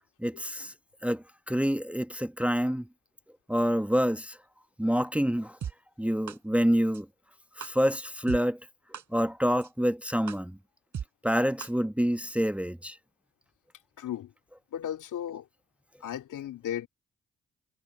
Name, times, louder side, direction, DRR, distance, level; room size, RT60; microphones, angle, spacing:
voice 1, 0.2-0.7 1.0-2.9 3.5-4.4 4.8-5.6 6.0-7.1 7.6-8.6 9.1-10.6 11.2-13.0, equal, 5° right, 1.2 m, -27 dB
sound 1, 5.6-5.7 6.3-6.4 6.9-7.0 7.6-7.7 8.3-8.4 8.9-9.0 9.6-9.7 10.3-10.4 10.9-11.1 11.6-11.7 12.3-12.4, right 8 dB, 65° right, 7.3 m, -36 dB
voice 2, 14.0-14.3 14.7-15.5 16.0-16.9, left 10 dB, 70° left, 2.9 m, -35 dB
hypercardioid pair, 40°, 31 cm